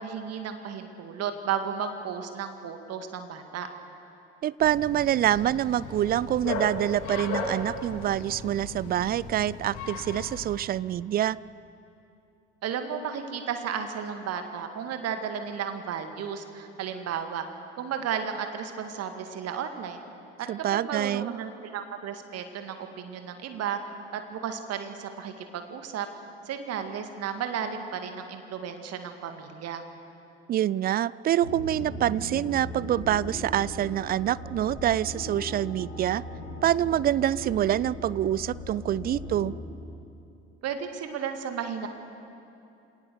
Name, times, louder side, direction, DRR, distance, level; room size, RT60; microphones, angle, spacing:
voice 1, 0.0-3.7 12.6-17.5 17.7-20.0 20.4-23.8 24.1-26.1 26.5-29.8 40.6-41.9, right 7 dB, 45° right, 7 dB, 2.0 m, -33 dB
voice 2, 4.4-11.4 20.5-21.4 30.5-36.2 36.6-39.5, right 12 dB, 25° right, 21 dB, 0.4 m, -26 dB
Bark, 4.6-10.5, left 3 dB, 60° left, 2.7 m, -36 dB
sound 1, 31.4-39.6, left 1 dB, 85° left, 2.7 m, -38 dB
27.0 x 18.5 x 6.9 m, 2.8 s
figure-of-eight pair, 55°, 35 cm